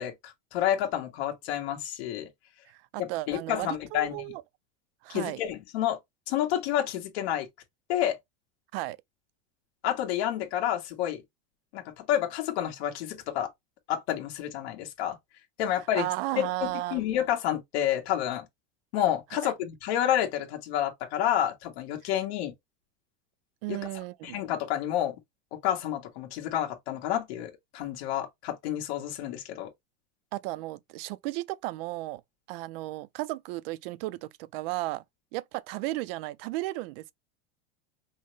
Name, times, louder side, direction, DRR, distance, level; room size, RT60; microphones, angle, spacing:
voice 1, 0.0-2.3 3.0-4.3 5.1-6.0 6.3-7.5 7.9-8.2 9.8-11.2 11.7-13.5 13.9-15.2 15.6-16.1 16.4-18.4 18.9-22.5 23.7-23.8 24.2-25.1 25.6-29.7, left 11 dB, 65° left, 1.4 m, -29 dB
voice 2, 2.7-4.4 5.0-5.4 8.7-9.0 15.9-17.0 19.4-19.5 23.6-24.4 30.3-32.2 32.5-35.0 35.3-37.1, right 18 dB, 55° right, 0.5 m, -34 dB
5.5 x 2.1 x 3.2 m
supercardioid pair, 155°, 34 cm